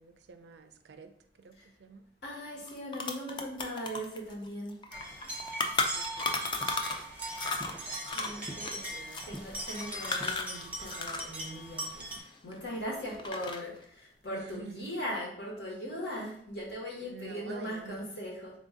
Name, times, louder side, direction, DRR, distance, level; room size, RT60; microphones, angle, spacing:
voice 1, 0.0-2.0 5.9-6.4 8.5-9.3 14.3-15.0 17.0-18.1, right 4 dB, 75° right, 8 dB, 0.4 m, -49 dB
voice 2, 2.2-4.8 8.1-8.9 9.2-12.0 12.4-18.5, equal, 75° left, -3 dB, 1.3 m, -39 dB
sound 1, 2.3-2.4 2.7-7.1 7.3-11.4 11.6-12.8 13.1-13.8, left 3 dB, 25° left, 0.3 m, -35 dB
sound 2, 4.9-12.2, right 1 dB, 10° right, 0.6 m, -40 dB
3.8 x 2.5 x 3.7 m, 0.67 s
head